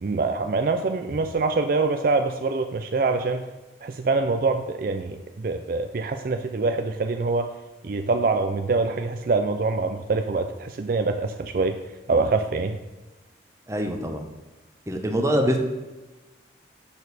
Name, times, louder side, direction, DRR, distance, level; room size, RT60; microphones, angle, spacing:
voice 1, 0.0-3.4 3.8-7.5 7.8-11.8 12.1-12.8, right 3 dB, 50° right, 7 dB, 0.4 m, -25 dB
voice 2, 13.7-14.2 14.9-15.6, equal, 15° right, 4 dB, 0.8 m, -24 dB
7.0 x 6.3 x 4.1 m, 1.2 s
head